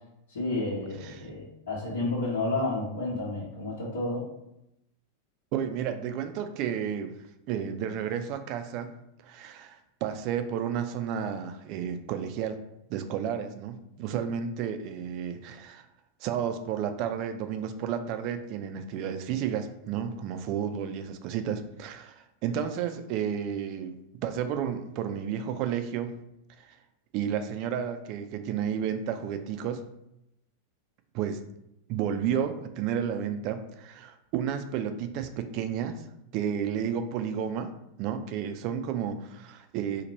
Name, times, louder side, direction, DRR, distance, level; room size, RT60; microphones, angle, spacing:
voice 1, 0.3-4.3, left 2 dB, 65° left, -6 dB, 1.0 m, -31 dB
voice 2, 5.5-7.1 7.5-8.9 9.2-12.6 12.9-15.9 16.2-24.0 24.2-26.1 26.6-26.7 27.1-29.8 31.1-31.4 31.9-36.0 36.3-37.7 38.0-40.0, right 8 dB, 40° right, 9 dB, 0.3 m, -32 dB
3.0 x 2.1 x 4.1 m, 0.84 s
figure-of-eight pair, 90°, 0 cm